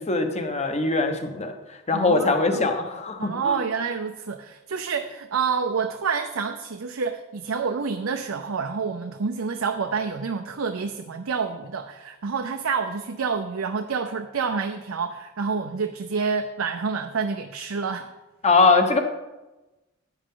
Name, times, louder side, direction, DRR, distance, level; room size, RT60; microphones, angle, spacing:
voice 1, 0.0-1.5 1.9-3.6 18.4-19.0, left 3 dB, 30° left, 6 dB, 1.1 m, -21 dB
voice 2, 1.9-2.7 3.2-18.1, right 5 dB, 80° right, 6 dB, 0.6 m, -28 dB
10.0 x 9.9 x 3.8 m, 1.1 s
head